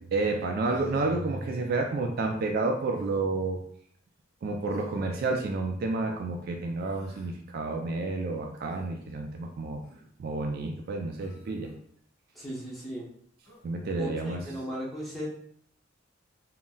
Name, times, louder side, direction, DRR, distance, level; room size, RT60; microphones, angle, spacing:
voice 1, 0.0-3.6 4.4-9.8 10.2-11.7 13.6-14.5, right 3 dB, 50° right, 2 dB, 0.3 m, -30 dB
Human voice, 0.6-1.2 2.9-3.2 4.7-5.1 6.7-7.3 8.7-8.9 9.8-10.1 11.2-11.8 13.4-13.7, equal, 70° right, 1.3 m, -53 dB
voice 2, 12.3-13.0 14.0-15.3, equal, ahead, -6 dB, 0.7 m, -37 dB
3.8 x 2.0 x 2.2 m, 0.63 s
head